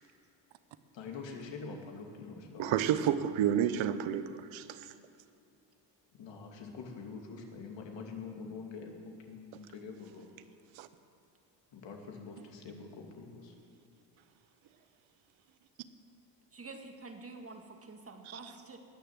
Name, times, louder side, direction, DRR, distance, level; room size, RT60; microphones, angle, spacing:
voice 1, 0.9-3.1 6.2-8.9 9.3-10.3 11.7-13.5, left 4 dB, 60° left, 2 dB, 2.6 m, -45 dB
voice 2, 2.6-4.9 10.8-10.9 18.2-18.5, right 10 dB, 70° right, 12 dB, 1.0 m, -30 dB
voice 3, 16.5-18.8, right 3 dB, 30° right, 4 dB, 2.0 m, -48 dB
20.0 x 6.8 x 7.6 m, 2.6 s
supercardioid pair, 70°, 49 cm